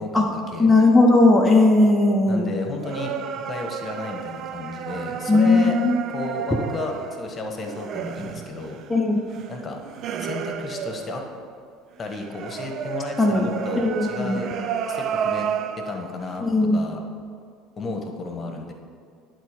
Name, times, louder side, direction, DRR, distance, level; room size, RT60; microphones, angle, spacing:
voice 1, 0.0-0.7 2.3-3.1 3.5-5.8 6.1-8.8 9.5-9.8 10.2-11.2 12.0-14.5 14.9-15.5 15.8-17.0 17.8-18.7, left 3 dB, 35° left, 3 dB, 1.3 m, -33 dB
voice 2, 0.6-2.5 5.3-6.0 8.9-9.2 13.2-13.5 13.8-14.4 16.4-16.8, left 2 dB, 5° left, -1 dB, 1.0 m, -17 dB
sound 1, 2.8-11.6 12.1-16.4, right 8 dB, 55° right, 0.5 m, -32 dB
11.5 x 4.0 x 5.1 m, 2.2 s
hypercardioid pair, 75°, 0 cm